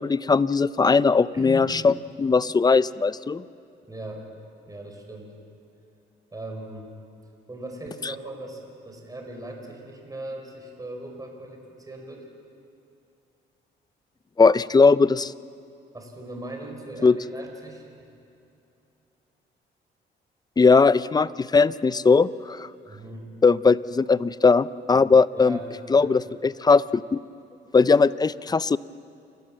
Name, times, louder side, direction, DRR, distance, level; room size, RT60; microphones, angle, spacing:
voice 1, 0.0-3.4 14.4-15.3 17.0-17.2 20.6-22.7 23.4-25.6 25.9-26.8 27.1-27.2 27.7-28.8, left 4 dB, 20° left, 18 dB, 0.5 m, -19 dB
voice 2, 1.3-1.7 3.9-4.3 4.7-5.3 6.3-6.9 7.5-12.3 15.9-17.8 22.8-23.3 25.3-25.7 26.0-26.3, right 1 dB, 20° right, 2 dB, 4.6 m, -39 dB
28.0 x 15.0 x 7.6 m, 2.7 s
cardioid pair, 90°, 20 cm